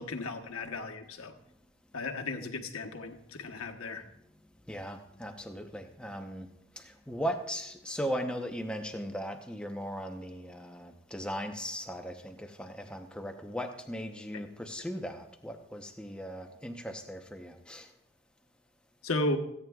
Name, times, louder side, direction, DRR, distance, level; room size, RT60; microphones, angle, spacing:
voice 1, 0.0-1.3 1.9-4.0 19.0-19.4, left 2 dB, 90° left, 1.2 m, -34 dB
voice 2, 4.4-17.9, equal, 5° left, 0.8 m, -38 dB
27.0 x 9.3 x 2.4 m
head